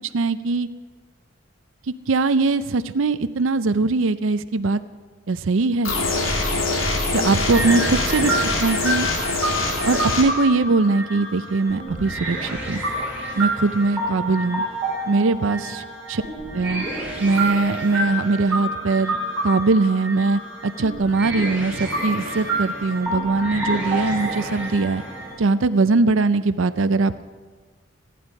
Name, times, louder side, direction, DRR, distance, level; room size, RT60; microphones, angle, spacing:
voice 1, 0.1-0.7 2.1-4.8 5.3-5.9 7.1-8.3 8.6-9.1 9.9-12.8 13.4-14.6 15.1-15.8 16.1-16.2 16.5-16.8 17.2-19.2 19.4-25.0 25.4-27.2, right 3 dB, 70° right, 12 dB, 0.5 m, -21 dB
sound 1, 5.8-10.2, left 2 dB, 75° left, 2.8 m, -24 dB
sound 2, 7.1-25.3, right 1 dB, 5° right, 5.3 m, -28 dB
24.5 x 10.0 x 5.3 m, 1.5 s
head